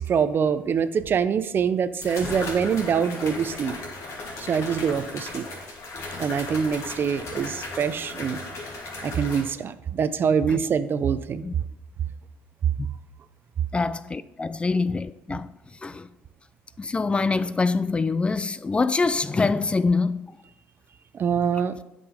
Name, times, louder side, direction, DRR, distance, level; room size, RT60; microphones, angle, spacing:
voice 1, 0.0-3.8 4.4-5.4 6.2-8.4 9.0-11.5 21.1-21.8, right 7 dB, 45° right, 0.6 m, -24 dB
sound 1, 1.0-1.1 2.0-9.4, left 2 dB, 65° left, 2.5 m, -36 dB
voice 2, 13.7-15.5 15.8-16.1 16.8-20.3, left 4 dB, 20° left, 0.3 m, -25 dB
8.7 x 5.4 x 5.1 m
supercardioid pair, 80°, 5 cm